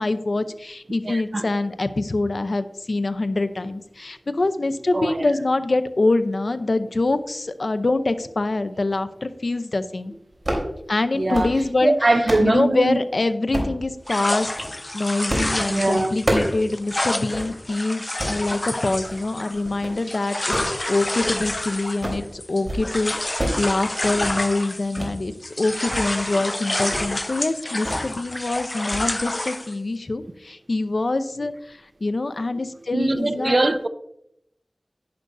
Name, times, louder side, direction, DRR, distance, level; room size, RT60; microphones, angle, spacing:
voice 1, 0.0-10.1 10.9-11.9 12.4-14.5 14.9-33.6, left 2 dB, 70° left, 0.7 m, -25 dB
voice 2, 1.1-1.4 4.9-5.2 11.2-11.5 11.8-13.0 15.7-16.1 32.9-33.9, right 2 dB, 60° right, 0.7 m, -21 dB
sound 1, 10.3-10.7 11.1-11.6 12.0-12.5 13.5-13.8 14.4-14.7 15.3-15.6 15.8-16.6 16.9-17.0 17.3-17.5 18.0-18.4 18.9-19.2 19.5-20.0 20.3-21.6 21.8-22.3 22.5-22.9 23.1-23.6 23.9-24.3 24.9-25.1 25.5-26.0 26.4-26.5 26.9-27.1 27.8-28.1 28.4-28.6 28.9-29.0, right 1 dB, 40° right, 3.7 m, -28 dB
sound 2, 14.1-25.2 25.4-29.7, left 1 dB, 30° left, 0.3 m, -29 dB
11.0 x 10.0 x 2.7 m
wide cardioid pair, 50°, 0 cm